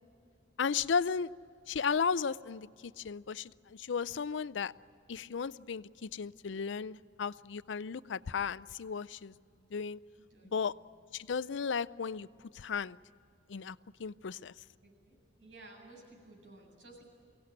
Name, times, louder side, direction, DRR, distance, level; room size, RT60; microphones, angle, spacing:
voice 1, 0.6-1.3 1.7-4.7 5.1-9.3 9.7-10.0 10.5-10.7 11.1-12.3 12.5-13.0 13.5-14.5, left 6 dB, 80° left, 18 dB, 0.5 m, -35 dB
voice 2, 10.2-10.7 14.8-17.0, right 2 dB, 85° right, -1 dB, 8.0 m, -55 dB
23.5 x 17.5 x 9.7 m, 2.4 s
head